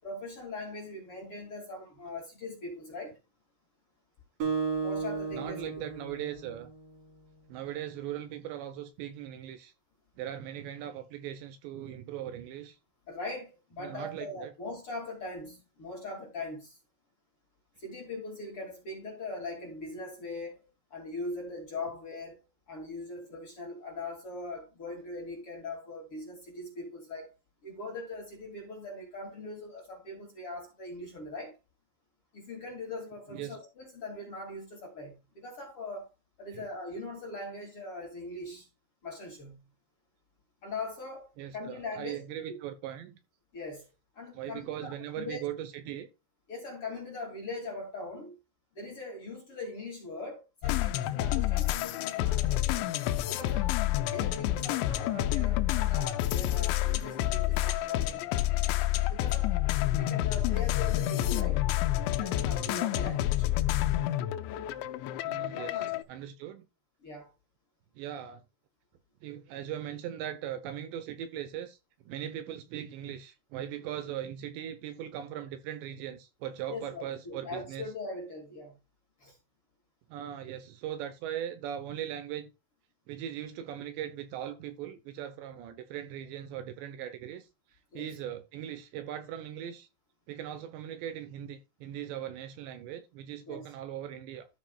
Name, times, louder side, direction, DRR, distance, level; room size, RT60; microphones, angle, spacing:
voice 1, 0.0-3.2 4.8-5.6 13.1-16.8 17.8-22.4 22.7-27.3 27.6-31.6 32.3-36.1 36.4-38.7 39.0-39.6 40.6-41.3 41.5-42.6 43.5-43.9 44.1-45.4 46.5-48.4 48.7-52.9 53.3-53.8 54.1-58.3 59.1-59.6 60.0-61.7 62.2-63.5 65.5-66.0 67.0-67.3 76.7-78.8 79.2-79.4 87.9-88.1 93.5-93.6, left 2 dB, 40° left, 2.5 m, -41 dB
Acoustic guitar, 4.4-7.2, right 5 dB, 50° right, 5.1 m, -34 dB
voice 2, 5.3-6.7 7.5-9.7 10.2-12.8 13.8-14.5 33.3-33.6 36.5-36.7 41.4-43.2 44.3-46.1 65.2-66.7 68.0-68.4 69.2-71.8 72.1-77.9 80.1-82.5 83.1-89.9 90.3-94.5, right 10 dB, 75° right, 3.0 m, -39 dB
sound 1, 50.6-66.0, left 14 dB, 80° left, 2.9 m, -29 dB
13.5 x 5.8 x 2.3 m
omnidirectional pair, 5.5 m